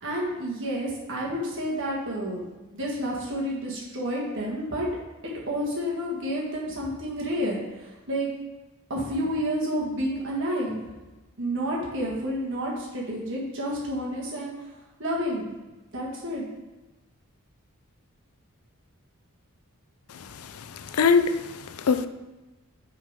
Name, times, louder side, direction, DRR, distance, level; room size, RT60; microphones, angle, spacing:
voice 1, 0.0-2.4 2.7-4.9 5.5-8.3 8.9-10.8 11.4-14.5 15.0-15.5 15.9-16.5, equal, 55° right, -4 dB, 1.6 m, -30 dB
voice 2, 20.1-22.1, left 5 dB, 75° left, 10 dB, 0.5 m, -24 dB
6.3 x 3.9 x 5.1 m, 1.1 s
head